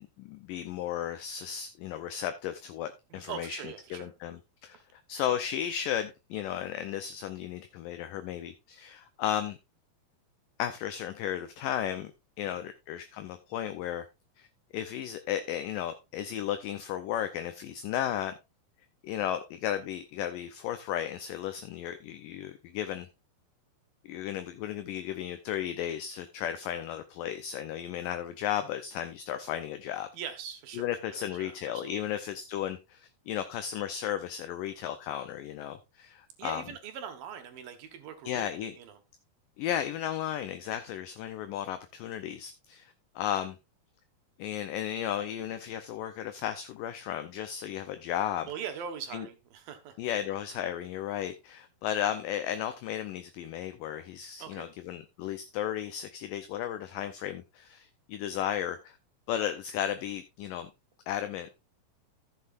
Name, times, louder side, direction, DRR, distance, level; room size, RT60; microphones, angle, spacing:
voice 1, 0.2-3.6 3.9-9.6 10.6-12.1 12.4-14.1 14.4-14.5 14.7-18.4 19.0-23.1 24.1-30.1 30.8-36.6 38.3-38.7 39.6-43.6 44.4-48.5 49.1-49.3 50.0-59.0 59.3-60.7 61.1-61.6, left 10 dB, 75° left, 2.1 m, -34 dB
voice 2, 3.1-4.1 12.4-12.7 30.1-32.0 36.4-39.0 48.5-49.9 54.4-54.7, right 8 dB, 70° right, 3.1 m, -42 dB
14.5 x 7.7 x 2.5 m
omnidirectional pair, 4.4 m